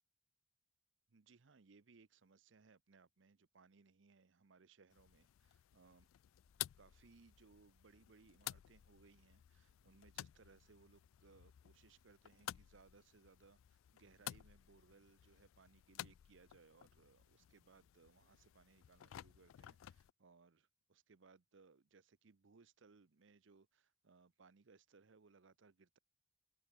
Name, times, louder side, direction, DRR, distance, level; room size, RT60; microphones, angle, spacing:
voice 1, 1.1-6.1 6.8-26.0, right 4 dB, 65° right, 0.7 m, -67 dB
sound 1, 4.9-20.1, left 14 dB, 85° left, 0.3 m, -54 dB
sound 2, 6.4-19.6, equal, 15° left, 2.2 m, -82 dB
head